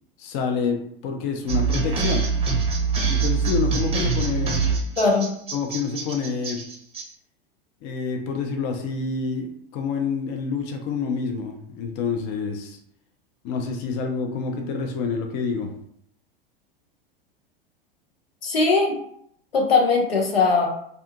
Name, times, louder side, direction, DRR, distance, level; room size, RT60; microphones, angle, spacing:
voice 1, 0.2-2.3 3.1-4.7 5.5-6.6 7.8-12.8 13.4-15.7, left 5 dB, 45° left, 3 dB, 0.5 m, -28 dB
sound 1, 1.5-7.0, right 5 dB, 20° right, 0.6 m, -24 dB
voice 2, 5.0-5.3 18.4-19.0 19.5-20.7, left 4 dB, 90° left, 0 dB, 0.7 m, -19 dB
2.5 x 2.3 x 2.7 m, 0.67 s
hypercardioid pair, 90°, 29 cm